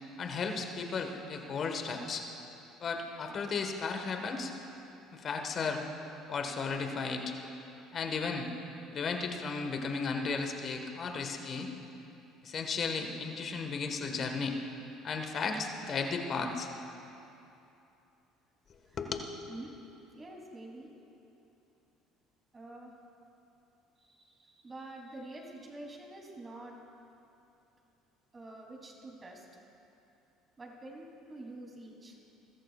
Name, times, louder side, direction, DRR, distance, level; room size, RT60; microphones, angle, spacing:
voice 1, 0.2-2.3 2.8-4.5 5.1-5.8 6.3-7.3 7.9-8.5 8.9-11.7 12.4-14.6 15.0-16.7 19.0-19.3, left 4 dB, 45° left, 4 dB, 1.5 m, -34 dB
voice 2, 20.1-20.9 22.5-22.9 24.0-26.8 28.3-29.5 30.6-32.2, right 2 dB, 25° right, -1 dB, 3.3 m, -47 dB
22.5 x 13.5 x 2.5 m, 2.8 s
supercardioid pair, 80°, 0 cm